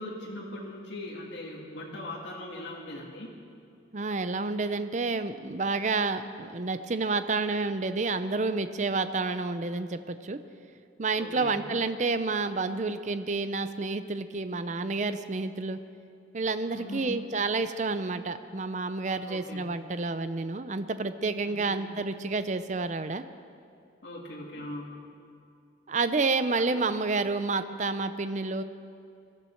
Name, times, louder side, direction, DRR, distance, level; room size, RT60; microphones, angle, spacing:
voice 1, 0.0-3.3 11.2-11.6 16.7-17.1 19.3-19.6 21.4-21.9 24.0-24.9 26.6-26.7, left 1 dB, 75° left, -3 dB, 2.0 m, -40 dB
voice 2, 3.9-10.4 11.0-15.8 16.3-23.2 25.9-28.6, right 3 dB, 40° right, 11 dB, 0.5 m, -29 dB
21.0 x 13.0 x 4.5 m, 2.5 s
head